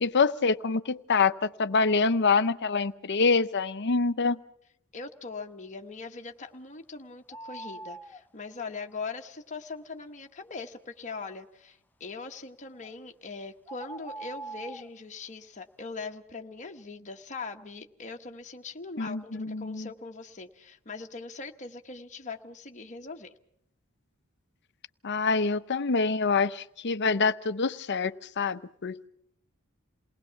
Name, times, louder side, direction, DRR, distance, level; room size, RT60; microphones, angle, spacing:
voice 1, 0.0-4.4 19.0-19.9 25.0-29.1, left 4 dB, 55° left, 13 dB, 0.8 m, -26 dB
voice 2, 4.9-23.3, left 4 dB, 35° left, 3 dB, 1.1 m, -41 dB
sound 1, 7.3-8.2 12.8-13.0 13.7-14.9, right 2 dB, 10° left, 0.8 m, -42 dB
28.5 x 19.5 x 5.8 m, 0.74 s
head